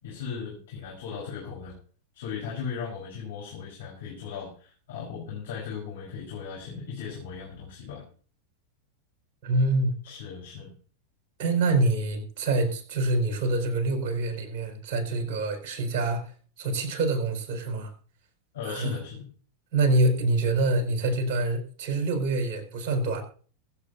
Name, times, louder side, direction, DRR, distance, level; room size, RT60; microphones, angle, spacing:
voice 1, 0.0-1.7 2.1-8.0 10.0-10.7 18.5-19.2, left 6 dB, 60° left, -3 dB, 4.1 m, -37 dB
voice 2, 9.4-9.9 11.4-17.9 18.7-19.0 19.7-23.2, right 2 dB, 45° right, 4 dB, 4.7 m, -26 dB
23.0 x 8.2 x 2.6 m, 0.42 s
figure-of-eight pair, 90°, 0 cm